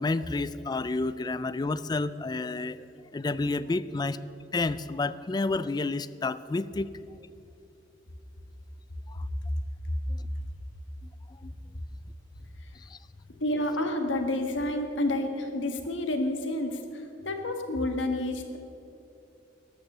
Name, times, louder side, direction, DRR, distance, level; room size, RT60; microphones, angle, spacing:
voice 1, 0.0-2.8 3.1-4.2 4.5-6.9 9.1-9.2 10.1-10.2 11.4-11.5 12.9-13.0, left 3 dB, 20° left, 15 dB, 0.3 m, -30 dB
voice 2, 13.4-18.6, left 1 dB, 90° left, 5 dB, 1.5 m, -29 dB
13.5 x 9.7 x 6.7 m, 2.7 s
head